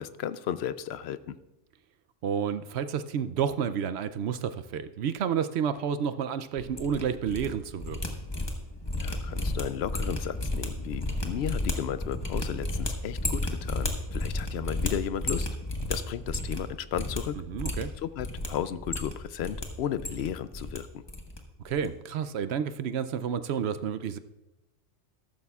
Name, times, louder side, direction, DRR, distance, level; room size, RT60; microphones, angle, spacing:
voice 1, 0.0-1.4 9.0-15.5 15.9-17.4 18.0-21.0, left 10 dB, 70° left, 14 dB, 0.8 m, -34 dB
voice 2, 2.2-8.0 17.3-17.9 21.6-24.2, right 7 dB, 70° right, 12 dB, 0.8 m, -30 dB
sound 1, 6.6-7.5 7.7-16.7 16.9-17.2 17.5-18.5 18.8-19.6 19.9-20.8 21.1-21.4 21.6-21.9, left 1 dB, 20° left, 1.2 m, -32 dB
13.5 x 12.5 x 2.4 m, 0.99 s
omnidirectional pair, 1.2 m